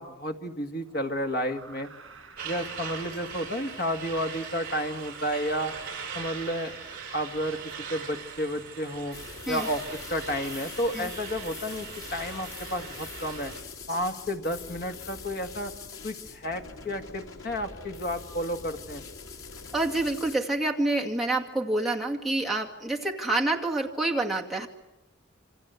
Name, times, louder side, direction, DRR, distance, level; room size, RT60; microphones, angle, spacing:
voice 1, 0.0-1.9 2.4-5.7 6.1-6.8 7.1-7.6 7.9-9.2 9.5-9.8 10.1-13.5 13.9-15.7 16.0-19.0, equal, 50° left, 5 dB, 1.8 m, -31 dB
sound 1, 0.8-5.8, right 4 dB, 65° right, 6.5 m, -51 dB
Truck, 2.4-13.6, right 6 dB, 45° right, 6.5 m, -40 dB
sound 2, 9.1-20.4, left 4 dB, 85° left, 2.7 m, -43 dB
voice 2, 19.7-24.7, right 2 dB, ahead, -2 dB, 2.2 m, -27 dB
27.5 x 25.5 x 8.1 m, 0.97 s
head